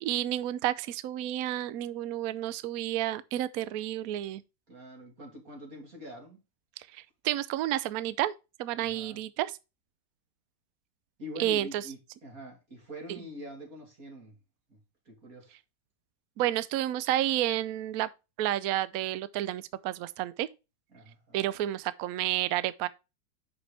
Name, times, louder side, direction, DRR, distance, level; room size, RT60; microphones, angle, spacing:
voice 1, 0.0-4.4 6.9-8.3 8.6-9.6 11.4-11.8 13.1-13.2 16.4-18.1 18.4-20.5 21.3-22.9, right 13 dB, 70° right, 0.9 m, -30 dB
voice 2, 4.7-6.4 8.8-9.2 11.2-14.4 14.7-14.8 15.0-15.6 20.9-21.4, equal, 50° right, 3.0 m, -45 dB
8.1 x 6.0 x 3.3 m
omnidirectional pair, 2.0 m